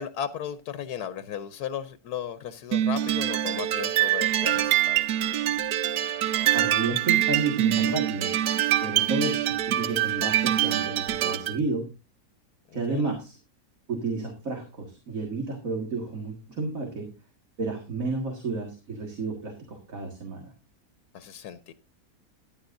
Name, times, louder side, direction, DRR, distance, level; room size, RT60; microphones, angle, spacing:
voice 1, 0.0-5.0 12.7-13.1 21.1-21.7, left 9 dB, 80° left, 11 dB, 1.2 m, -35 dB
sound 1, 2.7-11.6, right 12 dB, 90° right, 1.3 m, -25 dB
voice 2, 6.5-8.3 8.8-11.8 12.7-13.4 13.9-17.1 17.6-20.5, right 3 dB, 60° right, 2 dB, 2.3 m, -31 dB
14.0 x 10.5 x 2.6 m, 0.30 s
omnidirectional pair, 1.7 m